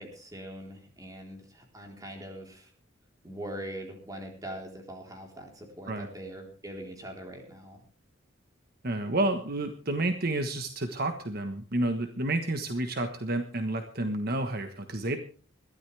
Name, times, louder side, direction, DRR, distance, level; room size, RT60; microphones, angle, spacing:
voice 1, 0.0-2.7 3.2-7.8, right 1 dB, 20° right, 2 dB, 3.9 m, -42 dB
voice 2, 8.8-15.2, right 2 dB, 50° right, 7 dB, 1.3 m, -30 dB
21.5 x 13.5 x 3.4 m, 0.39 s
head